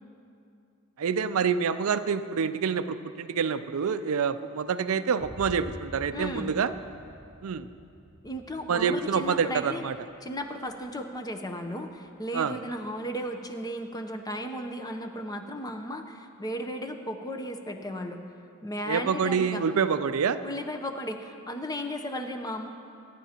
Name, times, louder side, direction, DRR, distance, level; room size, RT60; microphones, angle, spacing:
voice 1, 1.0-6.7 7.4-7.7 8.7-9.9 12.3-12.5 18.9-20.4, right 6 dB, 70° right, 11 dB, 0.5 m, -27 dB
Boom, 5.2-13.0, equal, 5° right, 1.3 m, -48 dB
voice 2, 6.1-6.6 8.2-9.8 10.2-18.2 18.6-19.6 20.4-22.7, equal, 15° left, 5 dB, 0.7 m, -35 dB
26.0 x 10.0 x 2.9 m, 2.5 s
head